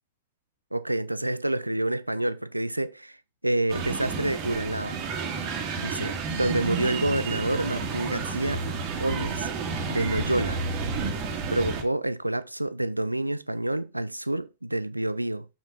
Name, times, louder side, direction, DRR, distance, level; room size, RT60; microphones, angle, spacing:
voice 1, 0.7-3.2 3.4-5.0 5.8-8.6 9.0-9.5 9.9-10.6 11.5-15.5, right 1 dB, 85° right, 0.4 m, -28 dB
sound 1, 3.7-11.8, right 5 dB, 40° right, 1.8 m, -31 dB
6.8 x 5.8 x 3.6 m
figure-of-eight pair, 90°, 0 cm